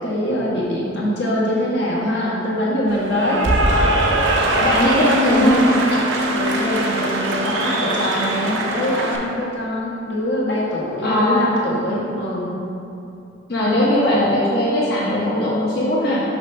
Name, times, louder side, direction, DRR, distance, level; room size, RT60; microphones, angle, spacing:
voice 1, 0.0-3.4 6.3-12.6, left 1 dB, 75° left, -5 dB, 1.3 m, -23 dB
Cheering / Applause, 2.9-9.2, right 2 dB, 85° right, 0.6 m, -21 dB
voice 2, 4.5-5.7 11.0-11.5 13.5-16.2, left 1 dB, 55° left, -8 dB, 0.9 m, -19 dB
sound 1, 5.4-8.4, left 1 dB, 20° left, 0.4 m, -26 dB
5.8 x 3.3 x 5.4 m, 2.7 s
head